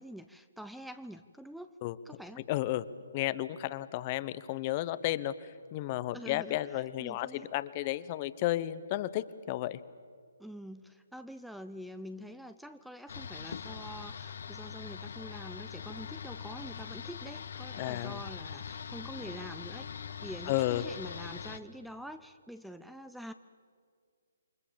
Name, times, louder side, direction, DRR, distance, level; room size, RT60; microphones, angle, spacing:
voice 1, 0.0-1.7 2.0-2.4 6.1-7.5 10.4-19.9 20.2-23.3, equal, ahead, 10 dB, 0.6 m, -46 dB
voice 2, 2.5-2.9 3.1-5.3 5.7-9.8 17.8-18.2 20.5-20.8, left 15 dB, 30° left, 16 dB, 0.9 m, -32 dB
sound 1, 13.1-21.6, left 7 dB, 65° left, 1.4 m, -42 dB
28.5 x 24.0 x 7.3 m, 2.1 s
figure-of-eight pair, 140°, 0 cm